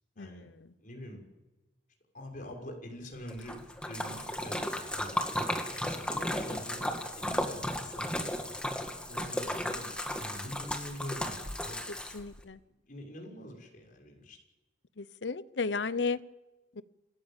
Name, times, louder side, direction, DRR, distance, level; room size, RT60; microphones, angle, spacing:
voice 1, 0.2-0.5 0.8-1.2 2.1-3.6 3.8-4.6 4.9-8.3 9.1-11.8 12.9-14.4, left 1 dB, 50° left, 1 dB, 6.1 m, -45 dB
Splash splatter, 3.3-12.4, left 1 dB, 5° left, 2.0 m, -35 dB
voice 2, 12.1-12.6 15.0-16.2 16.8-16.9, left 4 dB, 80° left, 16 dB, 0.8 m, -33 dB
28.0 x 14.0 x 9.0 m, 1.1 s
head